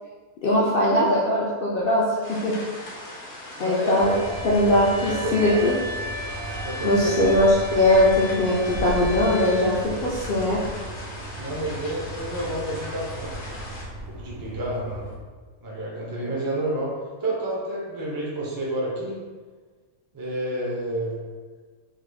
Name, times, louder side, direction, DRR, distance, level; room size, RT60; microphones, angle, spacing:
voice 1, 0.4-2.5 3.6-4.1 4.4-5.7 6.8-10.6, left 1 dB, 75° left, -6 dB, 0.5 m, -20 dB
sound 1, 2.2-13.8, left 1 dB, 60° left, 0.9 m, -39 dB
voice 2, 3.6-4.2 5.2-5.6 6.6-7.2 11.4-13.4 14.1-15.1 15.6-16.9 17.2-19.2 20.1-21.2, right 1 dB, 35° right, -4 dB, 0.3 m, -30 dB
sound 2, 4.0-15.2, equal, 85° right, 1.3 m, -34 dB
3.8 x 3.2 x 2.2 m, 1.4 s
omnidirectional pair, 1.5 m